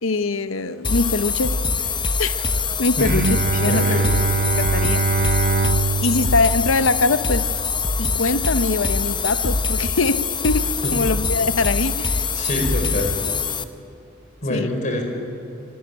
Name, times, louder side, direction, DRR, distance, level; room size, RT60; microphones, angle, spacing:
voice 1, 0.0-1.6 2.2-2.4 2.8-4.0 4.6-5.1 6.0-7.5 8.0-12.2 14.5-14.7, left 3 dB, 80° left, 12 dB, 0.9 m, -22 dB
sound 1, 0.8-13.6, left 4 dB, 25° left, 0.9 m, -23 dB
Bowed string instrument, 3.0-8.3, right 4 dB, 50° right, 0.7 m, -24 dB
voice 2, 3.7-4.1 10.8-10.9 12.3-13.2 14.4-15.0, left 1 dB, 40° left, 3 dB, 4.4 m, -25 dB
25.5 x 17.5 x 9.9 m, 2.5 s
head